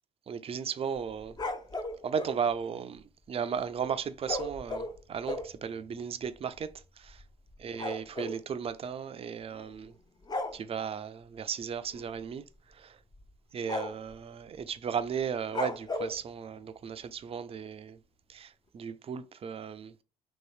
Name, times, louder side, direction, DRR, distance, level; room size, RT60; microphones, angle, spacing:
voice 1, 0.3-1.3 2.0-6.7 7.0-7.2 7.6-9.9 10.5-12.4 12.8-12.9 13.5-18.0 18.3-19.9, right 7 dB, 35° right, 0.4 m, -35 dB
sound 1, 1.0-2.4 4.2-5.6 6.3-6.4 6.6-6.8 7.1-8.4 9.5-9.8 10.2-10.6 11.9-12.2 12.5-12.6 13.1-13.3 13.7-14.1 15.5-16.2, left 2 dB, 25° left, 0.5 m, -36 dB
3.0 x 2.7 x 3.1 m
hypercardioid pair, 55°, 18 cm